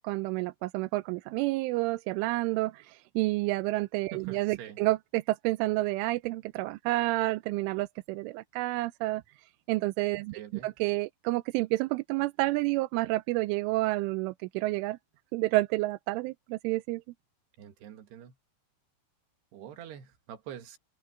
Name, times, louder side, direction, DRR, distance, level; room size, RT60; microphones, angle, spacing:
voice 1, 0.0-15.0 15.3-17.0, right 20 dB, 90° right, 3.2 m, -30 dB
voice 2, 4.1-4.8 10.3-10.7 17.6-18.4 19.5-20.8, right 10 dB, 65° right, 3.6 m, -45 dB
omnidirectional pair, 5.5 m